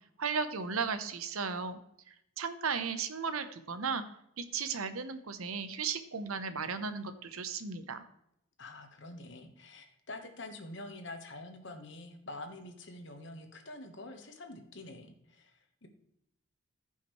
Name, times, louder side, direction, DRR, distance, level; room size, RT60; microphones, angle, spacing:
voice 1, 0.2-1.8 2.1-4.0 4.4-8.0, right 5 dB, 85° right, 10 dB, 0.9 m, -35 dB
voice 2, 8.6-15.9, left 2 dB, 55° left, 6 dB, 1.3 m, -46 dB
14.5 x 5.7 x 3.2 m, 0.77 s
head